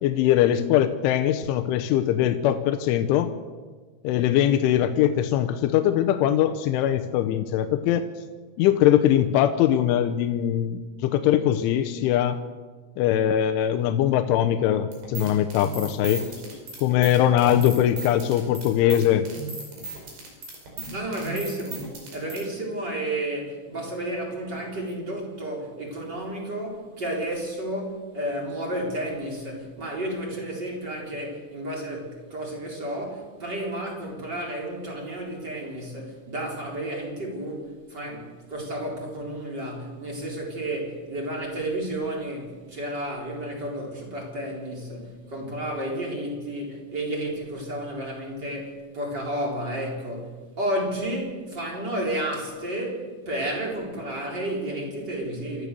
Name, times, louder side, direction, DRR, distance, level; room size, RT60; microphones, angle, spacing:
voice 1, 0.0-3.3 4.0-8.1 8.6-12.4 13.0-16.2 16.8-19.2, left 11 dB, 90° left, 3.3 m, -21 dB
sound 1, 14.9-22.4, right 3 dB, 55° right, 6.7 m, -36 dB
voice 2, 20.9-55.7, right 1 dB, 25° right, 4.3 m, -32 dB
27.5 x 14.0 x 6.9 m
omnidirectional pair, 5.4 m